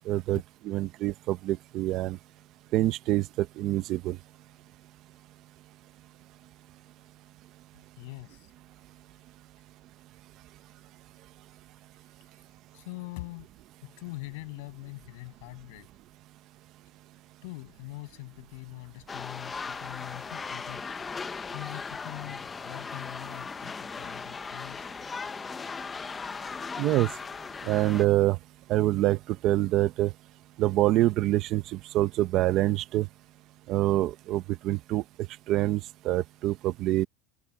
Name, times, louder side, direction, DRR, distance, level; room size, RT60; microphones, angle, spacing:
voice 1, 0.1-2.2 2.7-4.2 26.8-27.1 27.6-28.4 28.7-29.2 29.4-30.1 30.6-33.1 33.7-35.0 35.5-37.1, right 15 dB, 35° right, 0.8 m, -26 dB
voice 2, 7.7-8.5 12.3-12.5 12.7-13.5 14.0-15.9 17.4-21.0 21.5-25.0, left 24 dB, 60° left, 7.9 m, -43 dB
sound 1, 19.1-28.1, left 5 dB, 15° left, 0.6 m, -38 dB
supercardioid pair, 175°, 0 cm